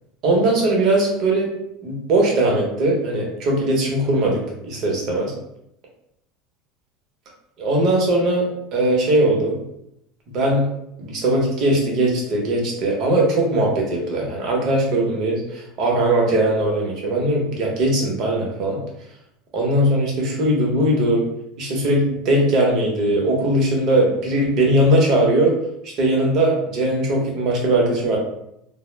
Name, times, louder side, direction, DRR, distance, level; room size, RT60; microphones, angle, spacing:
voice 1, 0.2-1.5 1.8-5.3 7.6-9.6 10.3-10.7 11.0-18.8 19.5-21.2 21.6-25.5 25.8-28.2, right 1 dB, 45° right, -1 dB, 0.8 m, -20 dB
2.0 x 2.0 x 3.2 m, 0.80 s
supercardioid pair, 135°, 0 cm